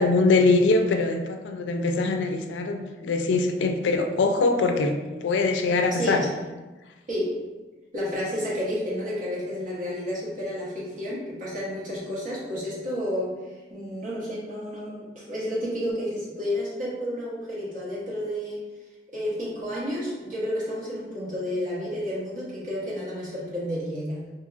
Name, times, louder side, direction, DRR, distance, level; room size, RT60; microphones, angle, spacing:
voice 1, 0.0-4.9 5.2-6.2, left 3 dB, 85° left, 5 dB, 0.3 m, -22 dB
voice 2, 5.9-6.3 7.1-7.4 7.9-13.3 13.7-18.6 19.1-24.3, equal, 45° right, -7 dB, 1.0 m, -31 dB
2.8 x 2.7 x 2.4 m, 1.2 s
head